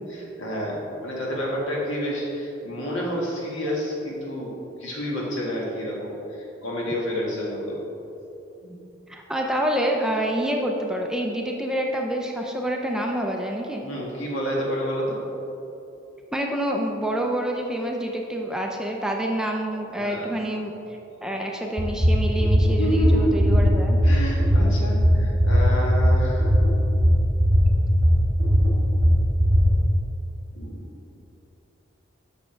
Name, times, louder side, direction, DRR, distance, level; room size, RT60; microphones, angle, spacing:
voice 1, 0.1-7.8 8.6-8.8 13.8-15.2 20.0-20.4 22.8-23.7 24.0-26.6 30.5-30.8, equal, 85° left, -4 dB, 1.9 m, -29 dB
voice 2, 9.1-13.8 16.3-20.7 21.2-24.0, right 1 dB, 5° right, 0 dB, 0.5 m, -27 dB
sound 1, 21.8-29.7, equal, 45° right, 1.9 m, -18 dB
7.5 x 6.1 x 4.5 m, 2.9 s
head